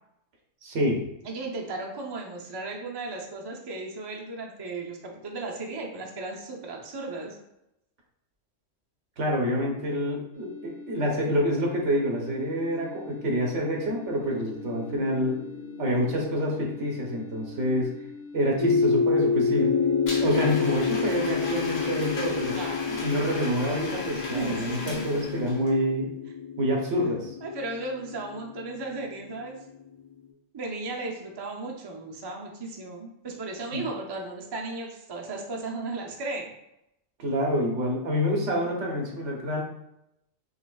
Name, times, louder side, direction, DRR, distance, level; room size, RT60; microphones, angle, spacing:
voice 1, 0.6-1.0 9.2-15.4 15.8-17.9 18.3-19.8 20.2-22.6 23.0-26.1 26.6-27.3 33.7-33.8 37.2-39.6, equal, 65° right, 0 dB, 1.2 m, -27 dB
voice 2, 1.2-7.4 22.5-23.1 24.3-25.2 27.4-29.6 30.5-36.5, right 3 dB, 40° right, 0 dB, 0.3 m, -35 dB
sound 1, 10.3-20.4, left 4 dB, 55° left, 1.6 m, -43 dB
sound 2, 14.2-17.1 18.6-29.9, left 5 dB, 10° right, 1.4 m, -29 dB
Domestic sounds home sounds, 20.1-25.7, left 2 dB, 70° left, 1.4 m, -37 dB
5.5 x 3.3 x 2.3 m, 0.83 s
omnidirectional pair, 1.3 m